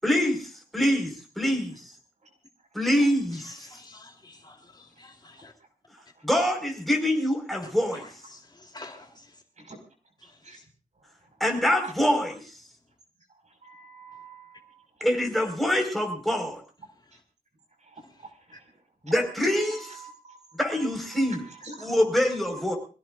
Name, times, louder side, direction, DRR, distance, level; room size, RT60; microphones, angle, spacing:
voice 1, 0.0-1.8 2.7-3.7 6.2-8.0 11.4-12.4 15.0-16.6 19.0-20.0 20.6-21.5 21.8-22.8, equal, ahead, 2 dB, 4.8 m, -25 dB
voice 2, 3.6-5.5 8.0-9.2 10.5-10.6, left 2 dB, 30° left, 3 dB, 3.4 m, -49 dB
voice 3, 13.6-14.5 20.0-20.4 21.1-21.4 21.6-21.9, right 3 dB, 55° right, 4 dB, 5.3 m, -45 dB
25.5 x 17.0 x 2.5 m, 0.38 s
wide cardioid pair, 120°, 14 cm